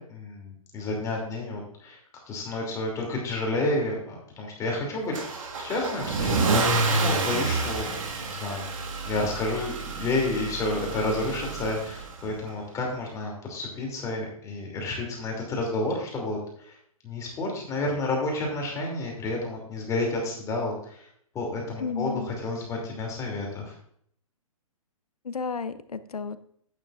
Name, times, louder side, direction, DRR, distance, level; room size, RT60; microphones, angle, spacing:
voice 1, 0.0-2.0 2.3-5.2 5.6-8.0 8.3-8.7 9.0-16.8 17.0-21.1 21.3-23.7, left 2 dB, 15° left, 0 dB, 2.7 m, -30 dB
Car / Engine starting / Accelerating revving vroom, 5.1-12.3, right 3 dB, 60° right, 1.8 m, -28 dB
voice 2, 21.8-22.3 25.2-26.4, left 5 dB, 85° left, 13 dB, 0.8 m, -32 dB
12.0 x 9.1 x 2.5 m, 0.63 s
hypercardioid pair, 130°, 19 cm